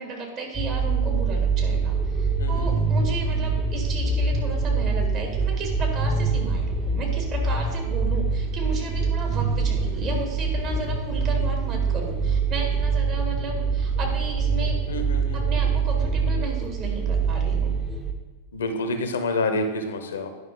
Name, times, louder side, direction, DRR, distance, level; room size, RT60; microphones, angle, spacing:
voice 1, 0.0-14.8 15.3-17.7, right 3 dB, 35° right, 1 dB, 1.9 m, -34 dB
sound 1, 0.5-18.1, right 4 dB, 15° right, 0.9 m, -24 dB
voice 2, 2.4-2.8 14.9-15.4 18.5-20.3, left 2 dB, 65° left, 7 dB, 0.8 m, -28 dB
9.7 x 5.4 x 3.7 m, 1.3 s
figure-of-eight pair, 90°, 0 cm